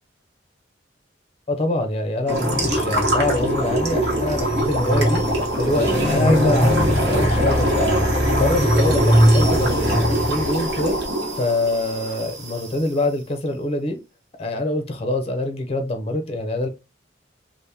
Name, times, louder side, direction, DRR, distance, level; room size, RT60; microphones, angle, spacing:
voice 1, 1.5-8.0 8.4-11.0 11.3-14.0 14.4-16.7, left 2 dB, 30° left, 0.5 m, -25 dB
sound 1, 2.3-12.7, equal, 60° right, 1.0 m, -20 dB
3.3 x 2.0 x 2.7 m
head